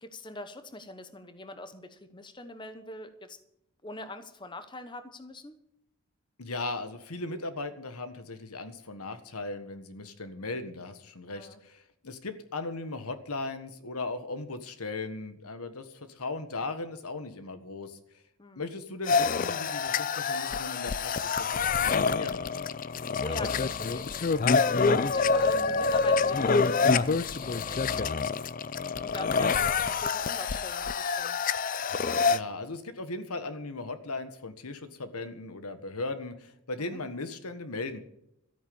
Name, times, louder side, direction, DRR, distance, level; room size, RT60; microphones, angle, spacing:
voice 1, 0.0-3.4 3.8-5.5 11.3-11.6 18.4-18.7 23.2-24.3 24.8-28.2 29.0-31.4 36.8-37.0, left 2 dB, 20° left, 9 dB, 1.0 m, -43 dB
voice 2, 6.4-18.2 18.5-22.4 32.2-38.0, left 3 dB, 90° left, 10 dB, 1.5 m, -38 dB
sound 1, 19.1-32.4, left 4 dB, 35° left, 0.4 m, -27 dB
13.5 x 9.1 x 7.0 m, 0.78 s
head